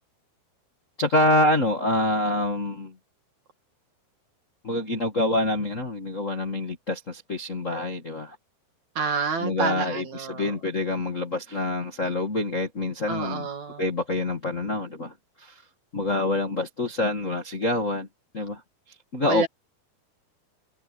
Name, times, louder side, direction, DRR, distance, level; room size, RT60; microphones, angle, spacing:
voice 1, 1.0-2.9 4.6-8.3 9.4-13.5 13.8-15.1 15.4-15.6 15.9-18.1 18.3-18.6 19.1-19.5, left 1 dB, 35° left, 1.4 m, -26 dB
voice 2, 9.0-10.5 13.1-13.8 19.2-19.5, right 6 dB, 55° right, 3.1 m, -29 dB
omnidirectional pair, 4.4 m